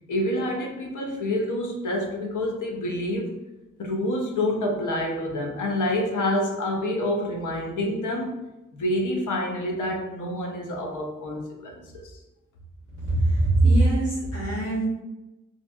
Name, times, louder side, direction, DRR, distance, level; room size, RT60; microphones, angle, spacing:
voice 1, 0.1-3.4 3.8-8.4 8.7-12.0, left 1 dB, 80° left, 1 dB, 0.6 m, -27 dB
voice 2, 13.0-14.9, right 2 dB, 50° left, -11 dB, 1.3 m, -21 dB
2.6 x 2.5 x 2.2 m, 0.98 s
wide cardioid pair, 110°, 31 cm